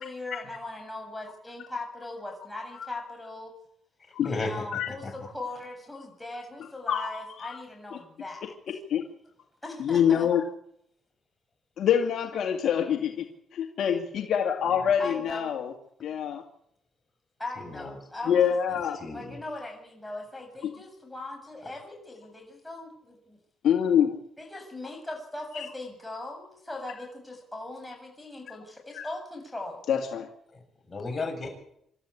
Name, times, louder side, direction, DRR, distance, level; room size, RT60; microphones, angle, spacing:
voice 1, 0.0-3.5 4.2-8.5 9.6-10.3 15.0-15.6 17.4-18.5 18.9-23.4 24.4-29.8, left 2 dB, 10° left, 2 dB, 7.7 m, -39 dB
voice 2, 4.2-5.1 14.6-14.8 17.6-18.0 18.7-19.4 30.5-31.5, left 3 dB, 30° left, 3 dB, 7.6 m, -35 dB
voice 3, 6.9-7.6 8.9-9.0 9.8-10.4 11.8-13.3 13.5-15.7 16.0-16.4 18.3-19.0 20.6-20.7 23.6-24.2 25.5-25.6 28.9-29.0 29.9-30.3, left 8 dB, 70° left, 3 dB, 2.2 m, -25 dB
26.5 x 12.5 x 8.7 m, 0.73 s
cardioid pair, 90°, 0 cm